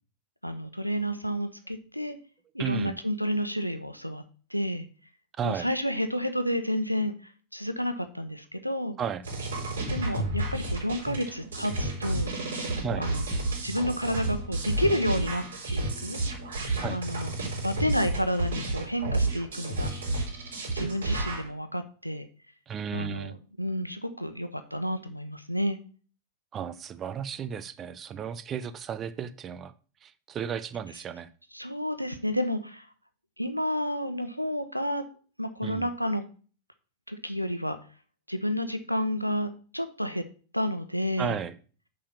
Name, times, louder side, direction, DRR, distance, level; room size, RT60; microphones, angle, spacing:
voice 1, 0.4-2.2 2.5-4.2 4.5-4.9 5.4-9.0 9.9-12.3 13.0-13.2 13.6-15.4 15.7-16.2 16.9-17.3 17.6-19.9 20.7-22.3 22.9-23.3 23.6-25.8 31.5-32.9 33.4-35.0 35.4-36.2 37.1-37.8 38.3-40.2 40.5-41.4, equal, 90° left, 9 dB, 0.9 m, -30 dB
voice 2, 2.6-2.9 5.4-5.7 9.0-9.2 12.8-13.0 16.8-17.0 22.7-23.4 26.5-29.7 30.0-31.3 35.6-35.9 41.2-41.5, right 7 dB, 25° right, 15 dB, 0.7 m, -34 dB
sound 1, 9.2-21.5, right 2 dB, 70° right, 3.5 m, -31 dB
6.6 x 5.5 x 7.2 m, 0.40 s
figure-of-eight pair, 90°, 0 cm